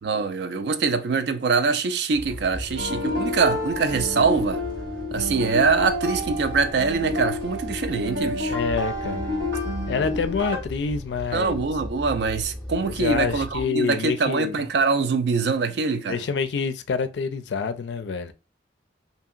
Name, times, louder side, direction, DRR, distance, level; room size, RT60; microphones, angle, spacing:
voice 1, 0.0-4.6 5.1-8.6 11.3-16.2, right 4 dB, 65° right, 0.4 m, -24 dB
sound 1, 2.1-13.6, left 1 dB, 5° left, 0.5 m, -37 dB
sound 2, 2.8-10.6, left 1 dB, 85° right, 1.5 m, -29 dB
voice 2, 8.5-9.3 9.9-11.7 12.9-14.6 16.1-18.3, left 5 dB, 70° left, 0.3 m, -27 dB
2.8 x 2.7 x 2.4 m
head